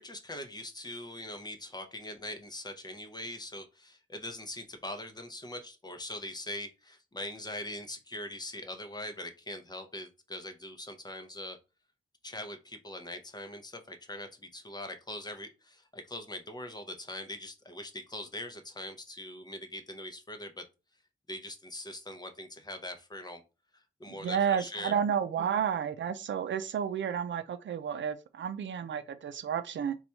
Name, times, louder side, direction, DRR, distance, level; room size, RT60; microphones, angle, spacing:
voice 1, 0.0-11.6 12.2-20.7 21.3-23.4 23.7-24.9, left 1 dB, 20° left, 0.6 m, -42 dB
voice 2, 24.1-30.0, right 8 dB, 75° right, 0.5 m, -31 dB
4.1 x 2.3 x 4.3 m
wide cardioid pair, 150°, 20 cm